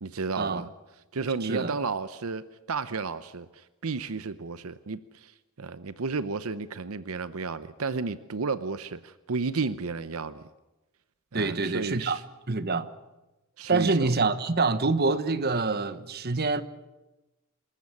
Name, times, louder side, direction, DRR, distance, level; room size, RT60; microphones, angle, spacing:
voice 1, 0.0-0.7 1.1-5.3 5.6-10.4 11.3-12.2 13.6-14.1, right 4 dB, 75° right, 0.8 m, -32 dB
voice 2, 1.4-1.8 11.3-12.2 12.5-12.9 13.7-16.6, right 3 dB, 45° right, 1.2 m, -26 dB
27.0 x 14.0 x 9.8 m
head